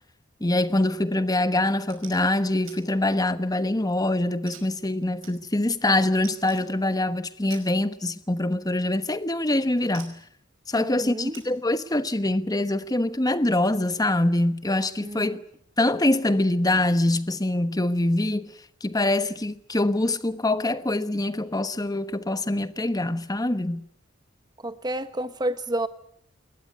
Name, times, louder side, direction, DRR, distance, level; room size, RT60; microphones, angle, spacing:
voice 1, 0.4-10.2 10.7-15.4 15.8-18.5 18.8-23.8, left 1 dB, 20° left, 1.1 m, -24 dB
sound 1, 1.9-2.2 2.7-2.8 3.2-3.7 4.5-5.8 6.2-6.7 7.5-7.7 9.0-9.1 9.9-10.3 11.3-11.5, right 8 dB, 80° right, 5.5 m, -47 dB
voice 2, 10.7-11.4 15.0-15.4 24.6-25.9, right 1 dB, 20° right, 1.5 m, -30 dB
21.5 x 19.5 x 9.3 m
head